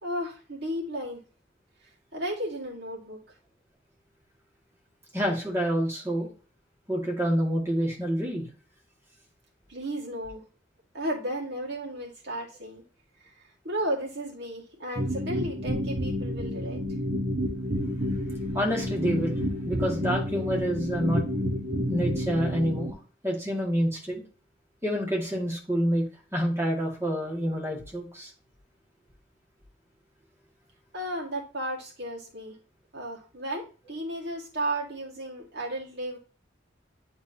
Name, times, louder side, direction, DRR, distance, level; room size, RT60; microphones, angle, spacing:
voice 1, 0.0-1.2 2.1-3.2 9.7-10.4 10.9-12.8 13.2-16.8 30.9-32.6 32.9-36.2, right 1 dB, 60° right, -2 dB, 2.0 m, -34 dB
voice 2, 5.1-6.3 6.9-8.5 18.5-21.2 21.9-23.0 23.2-24.2 24.8-28.3, equal, 15° right, -3 dB, 2.1 m, -28 dB
sound 1, 15.0-22.9, equal, 45° right, 1.1 m, -30 dB
9.4 x 3.6 x 2.8 m, 0.36 s
head